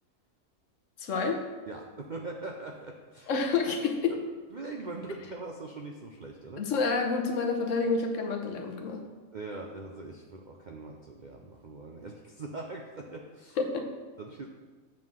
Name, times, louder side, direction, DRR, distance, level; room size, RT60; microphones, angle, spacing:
voice 1, 1.0-1.4 3.3-4.2 6.6-9.0 13.6-13.9, left 4 dB, 60° left, 4 dB, 1.1 m, -28 dB
voice 2, 1.7-3.3 4.1-4.2 4.5-6.6 9.3-13.6 14.2-14.5, right 3 dB, 70° right, 1 dB, 0.4 m, -41 dB
7.4 x 3.7 x 6.2 m, 1.4 s
omnidirectional pair, 1.5 m